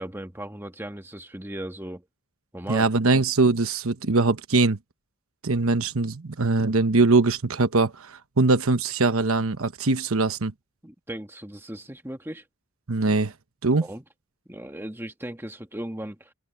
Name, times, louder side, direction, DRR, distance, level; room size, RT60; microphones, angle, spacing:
voice 1, 0.0-2.0 2.5-2.8 10.8-12.4 13.7-14.0 14.5-16.3, right 1 dB, 10° right, 1.4 m, -37 dB
voice 2, 2.7-4.8 5.4-10.5 12.9-13.3 13.6-13.9, right 3 dB, 75° right, 1.0 m, -22 dB
head